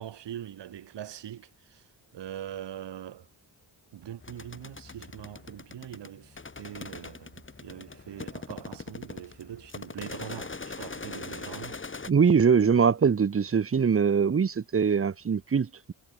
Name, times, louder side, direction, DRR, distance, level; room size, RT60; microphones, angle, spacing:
voice 1, 0.0-3.3 3.9-11.8, right 11 dB, 80° right, 3.2 m, -42 dB
sound 1, 4.2-12.1, left 3 dB, 30° left, 7.3 m, -42 dB
voice 2, 12.1-15.9, right 6 dB, 30° right, 1.1 m, -23 dB
cardioid pair, 95°, 41 cm